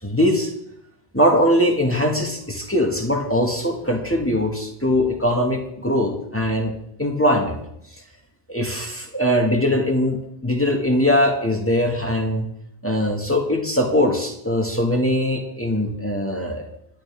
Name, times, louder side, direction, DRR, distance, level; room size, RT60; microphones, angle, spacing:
voice 1, 0.0-0.5 1.1-6.7 7.0-7.6 8.5-12.5 12.8-16.6, left 1 dB, 10° left, 1 dB, 2.3 m, -21 dB
27.5 x 11.5 x 3.8 m, 0.75 s
omnidirectional pair, 1.1 m